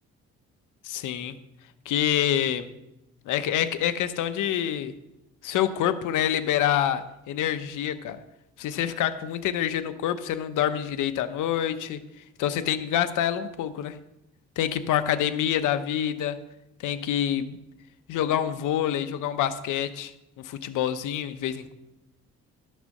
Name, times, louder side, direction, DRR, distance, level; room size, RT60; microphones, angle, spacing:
voice 1, 0.8-1.3 1.9-2.7 3.3-4.9 5.4-8.2 8.6-12.0 12.4-14.0 14.6-16.4 16.8-17.6 18.1-21.7, left 10 dB, 85° left, 11 dB, 0.9 m, -27 dB
12.0 x 6.7 x 6.5 m, 0.89 s
cardioid pair, 90°, 30 cm